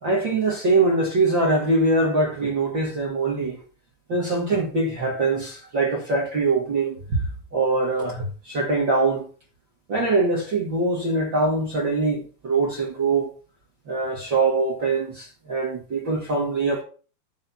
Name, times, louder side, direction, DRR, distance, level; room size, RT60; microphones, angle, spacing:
voice 1, 0.0-3.6 4.1-9.3 9.9-13.3 13.9-16.8, right 3 dB, 40° right, 1.8 m, -23 dB
11.5 x 4.0 x 5.7 m
omnidirectional pair, 5.0 m